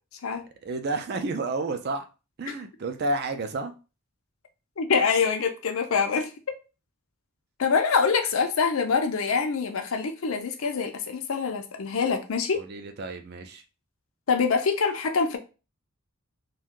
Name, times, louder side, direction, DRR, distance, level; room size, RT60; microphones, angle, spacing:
voice 1, 0.6-2.0 2.4-3.7 12.5-13.6, right 2 dB, 50° right, 7 dB, 0.4 m, -30 dB
voice 2, 4.8-6.3 7.6-12.6 14.3-15.4, left 5 dB, 75° left, 6 dB, 0.5 m, -25 dB
2.6 x 2.3 x 3.6 m, 0.31 s
head